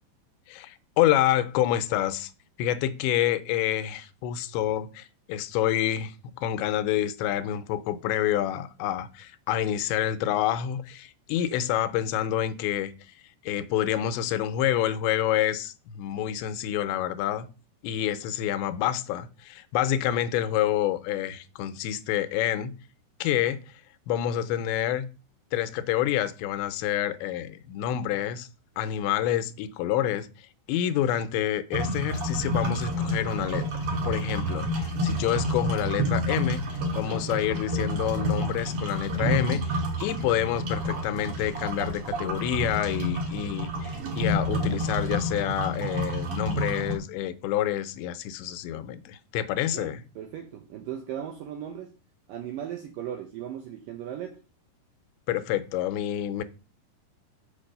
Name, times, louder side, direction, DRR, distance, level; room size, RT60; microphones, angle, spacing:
voice 1, 0.5-2.3 2.6-12.9 13.5-17.5 17.8-22.7 23.2-23.6 24.1-25.1 25.5-28.5 28.8-30.3 30.7-33.7 34.0-50.0 55.3-56.4, left 11 dB, 85° left, 3.0 m, -28 dB
sound 1, 31.7-46.9, equal, 55° right, 1.6 m, -29 dB
voice 2, 49.7-51.9 52.3-54.4, right 10 dB, 80° right, 2.0 m, -37 dB
6.5 x 6.1 x 6.5 m
omnidirectional pair, 5.0 m